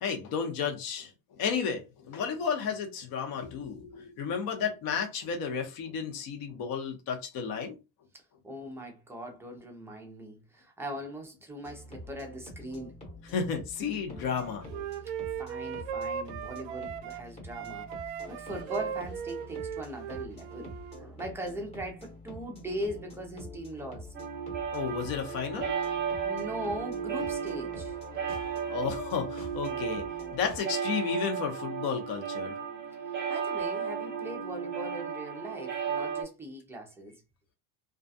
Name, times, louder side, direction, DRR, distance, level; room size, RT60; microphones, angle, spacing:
voice 1, 0.0-7.8 13.3-14.7 18.2-18.3 24.7-25.7 28.7-30.0 30.3-32.6, left 6 dB, 50° left, 0.8 m, -32 dB
voice 2, 8.4-13.0 15.1-20.7 21.0-24.1 26.2-28.0 33.3-37.2, right 1 dB, 5° right, 0.4 m, -40 dB
sound 1, 11.6-30.6, left 1 dB, 15° left, 0.9 m, -47 dB
Wind instrument woodwind instrument, 14.3-17.2 17.5-21.0, right 8 dB, 70° right, 0.5 m, -38 dB
sound 2, 24.1-36.2, right 7 dB, 25° right, 0.8 m, -34 dB
2.4 x 2.2 x 2.6 m
supercardioid pair, 130°, 45 cm